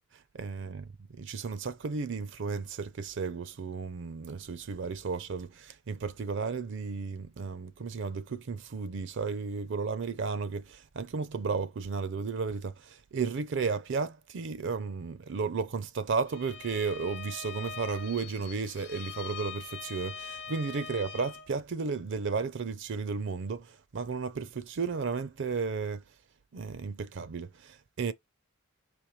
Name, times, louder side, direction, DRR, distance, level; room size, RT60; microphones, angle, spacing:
voice 1, 0.3-0.9 1.2-26.0 26.5-28.1, right 5 dB, 60° right, 0.5 m, -34 dB
Bowed string instrument, 16.3-21.5, left 6 dB, 55° left, 0.6 m, -43 dB
5.1 x 3.0 x 3.0 m
head